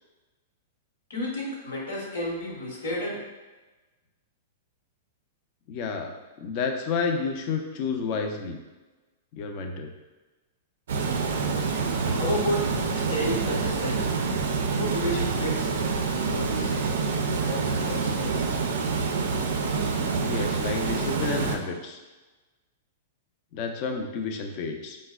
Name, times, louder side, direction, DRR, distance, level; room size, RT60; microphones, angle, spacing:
voice 1, 1.1-3.2 12.2-12.7 12.9-14.0 14.7-15.7 16.3-16.8 17.4-18.5, equal, 80° left, -2 dB, 1.0 m, -31 dB
voice 2, 5.7-6.1 6.4-8.6 9.3-9.9 20.2-22.0 23.5-25.0, left 5 dB, 45° left, 4 dB, 0.4 m, -30 dB
Water, 10.9-21.6, right 4 dB, 75° right, 0.4 m, -27 dB
4.6 x 2.1 x 2.3 m, 1.2 s
hypercardioid pair, 140°, 0 cm